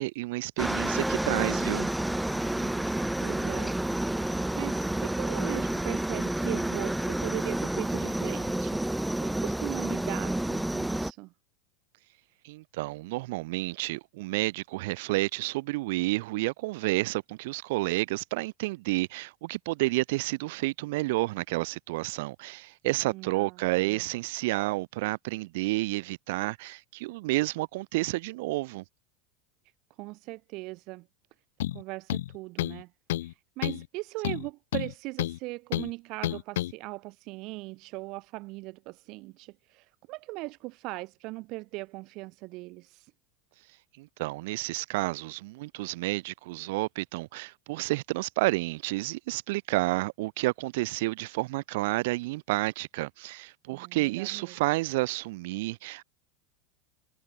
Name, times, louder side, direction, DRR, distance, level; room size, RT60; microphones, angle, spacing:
voice 1, 0.0-1.9 12.4-28.8 44.0-56.0, right 21 dB, 70° right, 5.8 m, -30 dB
Aircraft, 0.6-11.1, right 1 dB, 5° right, 1.8 m, -29 dB
voice 2, 2.3-2.9 3.2-3.8 4.1-8.8 9.2-11.3 23.1-24.0 30.0-31.1 31.7-32.9 33.2-43.1 53.7-54.6, right 23 dB, 55° right, 3.8 m, -39 dB
sound 1, 31.6-31.8 32.1-32.8 33.1-33.3 33.6-33.9 34.2-35.4 35.7-35.9 36.2-36.7, left 14 dB, 85° left, 1.9 m, -30 dB
supercardioid pair, 125°, 0 cm